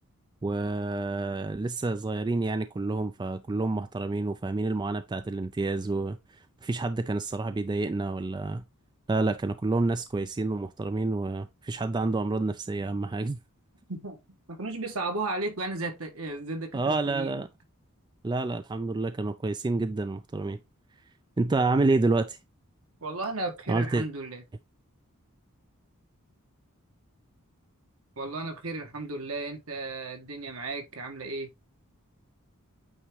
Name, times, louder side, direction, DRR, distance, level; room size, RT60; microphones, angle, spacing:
voice 1, 0.4-6.2 6.6-8.6 9.1-13.4 16.7-17.5 18.2-20.6 21.4-22.4 23.7-24.0, right 3 dB, 20° right, 0.3 m, -28 dB
voice 2, 13.9-14.2 14.5-17.4 23.0-24.4 28.2-31.5, right 2 dB, 70° right, 1.6 m, -34 dB
8.8 x 3.5 x 3.1 m
head